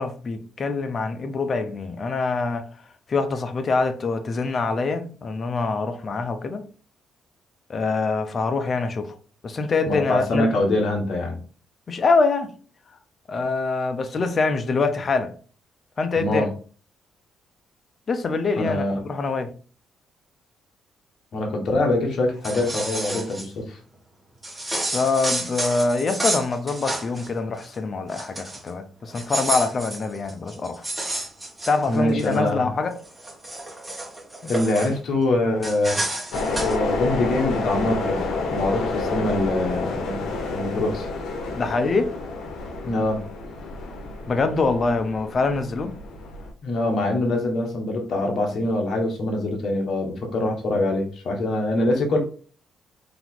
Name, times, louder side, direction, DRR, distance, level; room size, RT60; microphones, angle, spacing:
voice 1, 0.0-2.6 3.1-6.6 7.7-9.1 9.4-10.5 11.9-12.5 13.3-15.3 16.0-16.4 18.1-19.5 24.9-30.9 31.7-32.9 41.6-42.1 44.3-46.0, left 4 dB, 40° left, 0.7 m, -24 dB
voice 2, 9.9-11.4 16.2-16.5 18.6-19.0 21.3-23.8 31.9-32.7 34.4-36.3 36.6-40.2 40.5-41.1 42.8-43.2 46.6-52.2, left 2 dB, 60° left, 1.3 m, -24 dB
sound 1, 22.3-23.5 24.4-27.3 27.6-27.8 28.1-28.7 29.1-32.4 32.9-34.9 35.6-36.8, right 1 dB, 10° right, 1.3 m, -30 dB
sound 2, 36.3-46.5, left 3 dB, 80° left, 0.9 m, -29 dB
3.9 x 2.9 x 3.9 m
cardioid pair, 90°, 0 cm